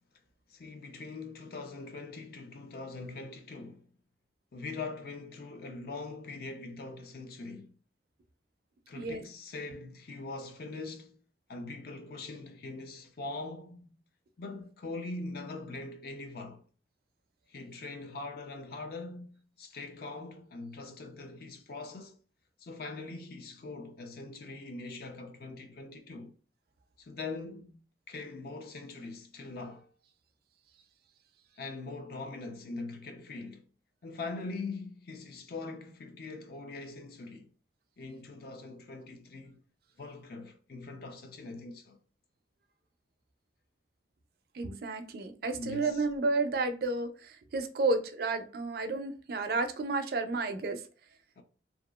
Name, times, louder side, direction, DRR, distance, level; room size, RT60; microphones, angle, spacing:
voice 1, 0.5-3.9 4.5-7.7 8.9-11.2 11.5-14.0 14.4-16.6 17.5-22.2 22.6-26.3 27.0-27.8 28.1-29.9 31.6-33.6 34.0-37.5 38.0-39.6 40.0-42.0 45.6-46.1 51.4-51.5, left 3 dB, 55° left, 0.4 m, -42 dB
voice 2, 44.5-50.8, right 3 dB, 55° right, 0.4 m, -31 dB
2.8 x 2.3 x 2.2 m
head